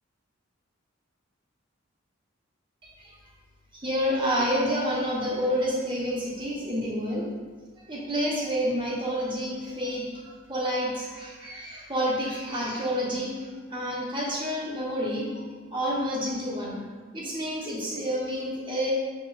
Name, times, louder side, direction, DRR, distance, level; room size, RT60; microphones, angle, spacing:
voice 1, 3.7-7.3 7.9-13.3 13.7-15.3 15.7-16.8 17.1-18.9, equal, 25° right, -4 dB, 0.9 m, -29 dB
6.8 x 2.9 x 2.3 m, 1.4 s
head